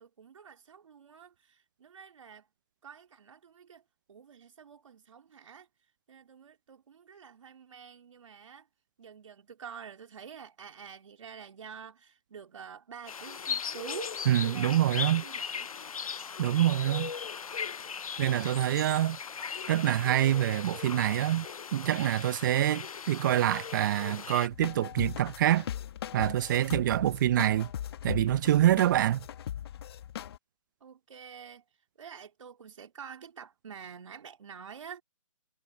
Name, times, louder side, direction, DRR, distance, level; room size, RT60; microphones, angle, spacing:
voice 1, 0.0-2.5 2.8-3.8 4.1-5.7 6.1-8.7 9.0-14.2 14.4-15.7 30.8-31.6 32.0-35.0, right 7 dB, 65° right, 3.4 m, -48 dB
sound 1, 13.1-24.5, left 6 dB, 85° left, 0.6 m, -38 dB
voice 2, 14.3-15.2 16.4-17.1 18.2-19.2 19.7-21.5 21.7-25.6 26.1-27.7 28.0-29.2, right 12 dB, 35° right, 0.7 m, -26 dB
sound 2, 24.5-30.4, left 10 dB, 45° left, 1.9 m, -39 dB
hypercardioid pair, 150°, 18 cm